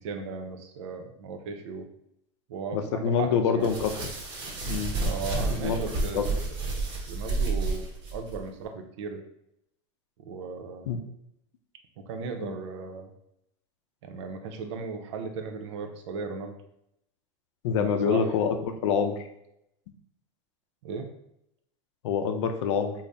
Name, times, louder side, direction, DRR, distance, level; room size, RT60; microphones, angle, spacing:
voice 1, 0.0-1.9 2.5-3.7 5.0-6.2 7.1-7.8 8.1-9.2 10.2-10.9 12.0-13.1 14.0-16.6 17.7-18.3 20.8-21.1, right 5 dB, 80° right, 6 dB, 0.6 m, -36 dB
voice 2, 2.7-3.9 4.7-5.0 5.4-6.3 10.9-11.0 12.4-12.5 17.6-19.3 22.0-22.9, left 6 dB, 85° left, 7 dB, 0.5 m, -26 dB
sound 1, 3.6-8.4, right 3 dB, 40° right, 1.1 m, -30 dB
4.0 x 2.0 x 3.3 m, 0.78 s
supercardioid pair, 155°, 15 cm